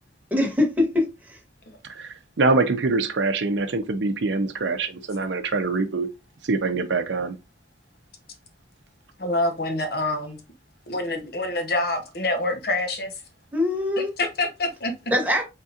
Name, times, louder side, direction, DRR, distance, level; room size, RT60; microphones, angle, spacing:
voice 1, 0.3-1.4 13.5-14.1 15.1-15.4, left 1 dB, 10° right, 1.2 m, -23 dB
voice 2, 1.9-6.1 6.4-7.4, right 3 dB, 75° right, 0.6 m, -24 dB
voice 3, 9.2-10.4 10.9-13.1 14.2-14.9, left 2 dB, 55° left, 0.8 m, -26 dB
4.2 x 3.6 x 2.4 m
head